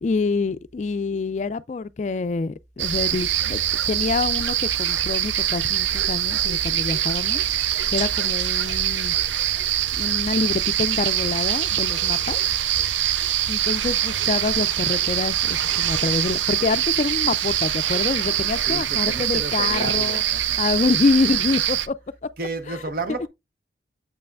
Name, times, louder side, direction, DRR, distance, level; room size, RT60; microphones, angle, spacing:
voice 1, 0.0-3.6 3.9-7.4 7.9-9.1 10.0-12.4 13.5-20.2 20.6-21.9 22.7-22.8, left 4 dB, 40° left, 0.3 m, -26 dB
sound 1, 2.8-21.9, right 11 dB, 85° right, 0.5 m, -23 dB
voice 2, 18.6-20.6 22.4-23.3, right 3 dB, 50° right, 0.8 m, -32 dB
7.5 x 5.5 x 2.4 m
head